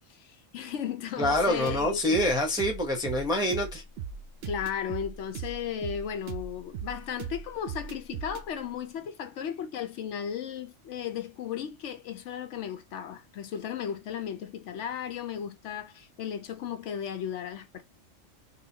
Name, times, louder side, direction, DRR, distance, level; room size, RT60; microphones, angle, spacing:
voice 1, 0.1-2.2 4.4-17.8, left 8 dB, 70° left, 0.8 m, -35 dB
voice 2, 1.2-3.8, left 1 dB, 5° right, 0.6 m, -26 dB
sound 1, 1.2-8.5, right 7 dB, 60° right, 0.7 m, -39 dB
3.9 x 2.2 x 2.7 m
omnidirectional pair, 1.4 m